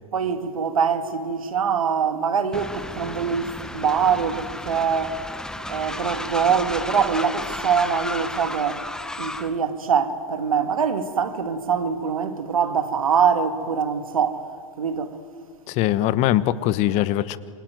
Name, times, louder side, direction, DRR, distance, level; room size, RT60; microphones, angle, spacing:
voice 1, 0.1-5.2 5.6-8.8 9.2-14.5 14.8-15.2, right 6 dB, 85° right, 2.1 m, -23 dB
Train, 2.5-9.6, left 1 dB, 5° left, 1.0 m, -33 dB
voice 2, 15.7-17.4, left 13 dB, 40° left, 1.1 m, -21 dB
27.5 x 23.5 x 9.2 m
hypercardioid pair, 115°, 17 cm